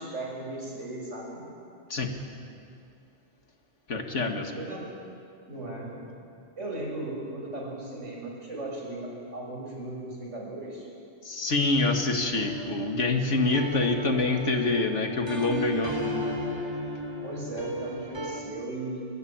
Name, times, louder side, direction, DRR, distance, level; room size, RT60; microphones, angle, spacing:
voice 1, 0.0-1.5 4.5-4.9 5.5-5.9 6.6-10.9 17.2-19.1, right 2 dB, 85° right, -1 dB, 6.2 m, -37 dB
voice 2, 3.9-4.5 11.2-15.9, left 3 dB, 80° left, 4 dB, 2.4 m, -26 dB
sound 1, 12.3-18.4, equal, 20° right, 3.8 m, -35 dB
24.0 x 20.5 x 8.9 m, 2.5 s
omnidirectional pair, 1.2 m